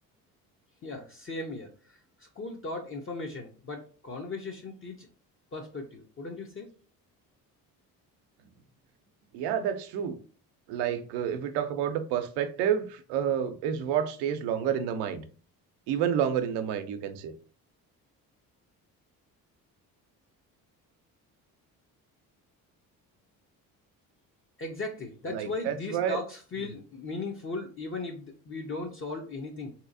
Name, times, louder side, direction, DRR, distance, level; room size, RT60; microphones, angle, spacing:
voice 1, 0.8-5.1 5.5-6.7 24.6-29.7, left 3 dB, 35° left, 0.6 m, -37 dB
voice 2, 9.3-10.2 10.7-15.2 15.9-17.3 25.3-26.2, right 9 dB, 85° right, 0.6 m, -29 dB
3.2 x 2.8 x 2.5 m
supercardioid pair, 70°, 38 cm